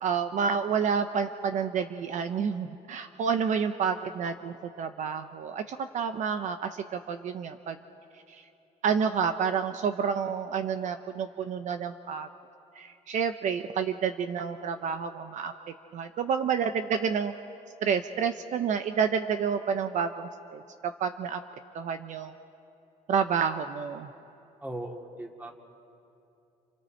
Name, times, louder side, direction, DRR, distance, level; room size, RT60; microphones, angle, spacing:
voice 1, 0.0-7.8 8.3-8.4 8.8-12.3 12.8-15.5 15.9-17.3 17.8-21.4 21.7-22.3 23.1-24.1, right 6 dB, 60° right, 8 dB, 0.8 m, -29 dB
voice 2, 24.6-25.6, right 1 dB, 10° right, 2 dB, 2.3 m, -38 dB
29.5 x 28.5 x 4.5 m, 2.8 s
cardioid pair, 115°, 14 cm